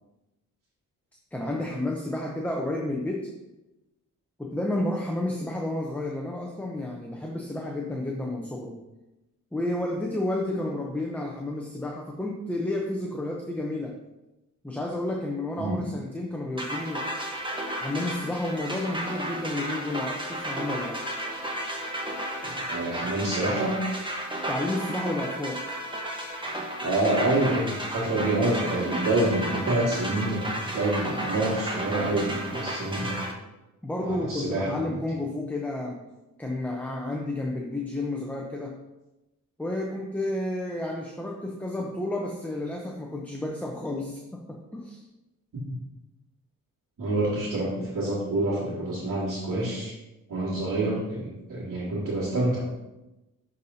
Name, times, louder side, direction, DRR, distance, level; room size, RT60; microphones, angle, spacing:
voice 1, 1.3-3.3 4.4-8.8 9.5-14.0 14.6-17.1 17.8-21.0 24.5-25.6 33.8-36.0 36.4-38.8 39.6-45.0, left 1 dB, 5° left, 0 dB, 0.7 m, -31 dB
sound 1, 16.6-33.3, right 1 dB, 15° right, 1.1 m, -33 dB
voice 2, 22.4-23.8 26.8-33.2 34.0-35.0 45.5-45.6 47.0-49.9 50.3-52.6, right 2 dB, 65° right, -10 dB, 2.1 m, -27 dB
10.5 x 4.1 x 2.7 m, 1.0 s
cardioid pair, 90°, 33 cm